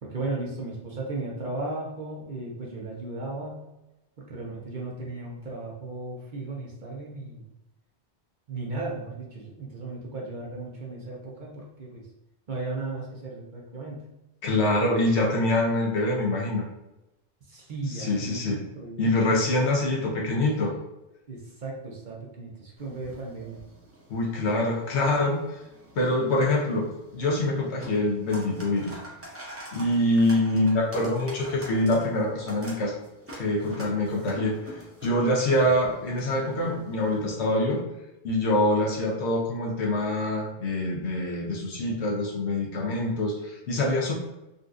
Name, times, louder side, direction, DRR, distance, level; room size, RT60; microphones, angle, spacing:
voice 1, 0.0-3.7 4.2-7.4 8.5-12.0 12.5-14.1 17.4-19.4 20.0-20.4 21.3-23.6 35.5-35.6, right 2 dB, 50° right, -3 dB, 0.7 m, -36 dB
voice 2, 14.4-16.6 17.9-18.6 19.0-20.7 24.1-25.4 25.9-26.9 27.1-29.0 29.7-32.9 33.4-37.8 38.2-44.1, left 1 dB, 75° left, -1 dB, 1.0 m, -25 dB
sound 1, 22.8-37.2, right 1 dB, 15° right, 0.5 m, -46 dB
3.9 x 2.4 x 2.5 m, 0.95 s
omnidirectional pair, 1.1 m